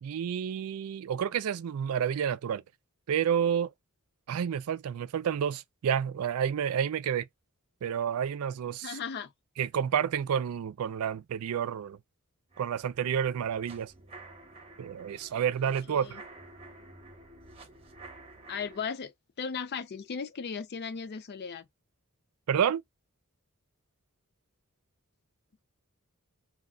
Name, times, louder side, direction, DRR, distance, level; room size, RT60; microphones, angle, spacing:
voice 1, 0.0-2.6 3.1-3.7 4.3-7.3 7.8-9.0 9.6-12.0 12.6-13.9 14.8-16.2 22.5-22.8, right 8 dB, 75° right, 0.3 m, -30 dB
voice 2, 8.8-9.3 15.9-16.2 18.5-21.7, left 6 dB, 50° left, 0.4 m, -37 dB
sound 1, 12.5-18.9, right 2 dB, 25° right, 0.8 m, -51 dB
2.4 x 2.1 x 3.6 m
head